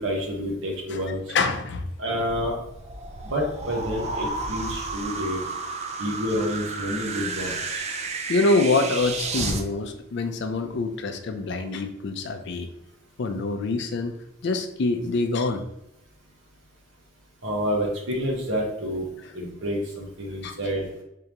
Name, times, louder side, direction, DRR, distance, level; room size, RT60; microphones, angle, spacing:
voice 1, 0.0-1.2 2.0-2.5 3.2-5.4 6.0-7.8 17.4-19.0 19.3-20.9, equal, 75° right, -1 dB, 1.3 m, -28 dB
voice 2, 0.9-1.9 8.3-12.7 13.2-14.1 14.4-15.6 19.2-19.3 20.4-20.6, left 3 dB, 65° left, 8 dB, 0.4 m, -25 dB
sound 1, 2.2-9.6, right 3 dB, 35° right, 0.5 m, -32 dB
3.7 x 3.4 x 2.9 m, 0.84 s
head